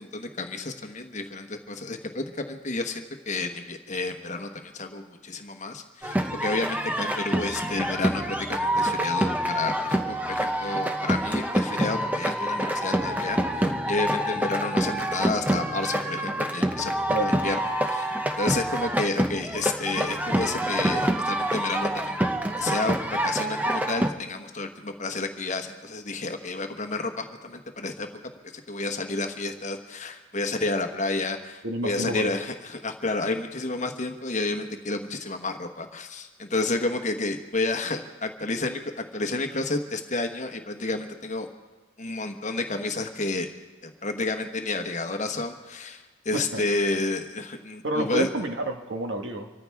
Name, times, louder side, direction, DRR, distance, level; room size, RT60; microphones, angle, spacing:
voice 1, 0.0-16.9 17.2-17.6 17.8-22.2 22.6-23.0 23.2-28.1 28.7-41.5 42.0-43.5 43.8-48.3, left 3 dB, 35° left, 5 dB, 1.2 m, -30 dB
sound 1, 6.0-24.1, right 1 dB, 10° right, 0.7 m, -27 dB
voice 2, 31.6-32.3 46.3-46.6 47.8-49.5, right 2 dB, 65° right, 4 dB, 1.5 m, -29 dB
26.5 x 14.0 x 3.5 m, 1.2 s
head